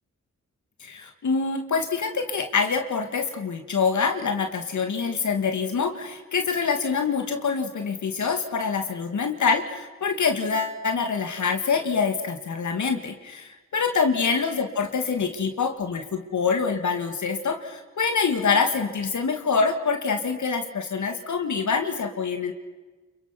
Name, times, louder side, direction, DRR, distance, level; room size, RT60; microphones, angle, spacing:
voice 1, 0.8-22.5, left 5 dB, 75° left, 6 dB, 2.6 m, -25 dB
29.5 x 23.5 x 6.2 m, 1.2 s
cardioid pair, 70°, 30 cm